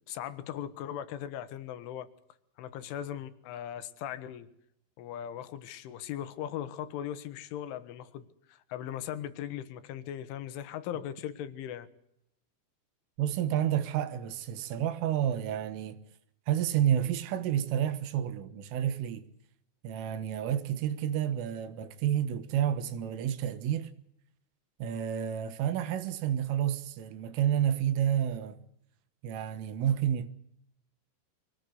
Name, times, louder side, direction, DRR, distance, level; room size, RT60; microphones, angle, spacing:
voice 1, 0.1-2.1 2.6-4.5 5.0-11.9, left 10 dB, 80° left, 3.6 m, -39 dB
voice 2, 13.2-16.0 16.5-19.3 19.8-23.9 24.8-28.6 29.2-30.3, right 10 dB, 80° right, 3.9 m, -30 dB
24.0 x 18.5 x 8.1 m
omnidirectional pair, 5.7 m